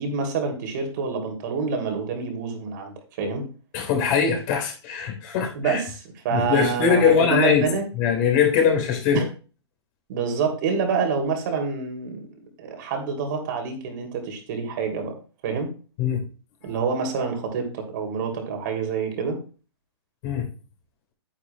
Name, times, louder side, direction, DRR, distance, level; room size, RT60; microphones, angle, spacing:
voice 1, 0.0-3.4 5.5-7.9 9.1-9.3 10.1-12.3 12.6-15.1 15.4-15.7 16.6-19.4, right 5 dB, 45° right, 3 dB, 3.0 m, -27 dB
voice 2, 3.7-5.8 6.3-7.7 8.0-9.2 16.0-16.2 20.2-20.5, left 7 dB, 40° left, 2 dB, 3.8 m, -21 dB
10.5 x 9.6 x 2.3 m, 0.35 s
figure-of-eight pair, 125°, 14 cm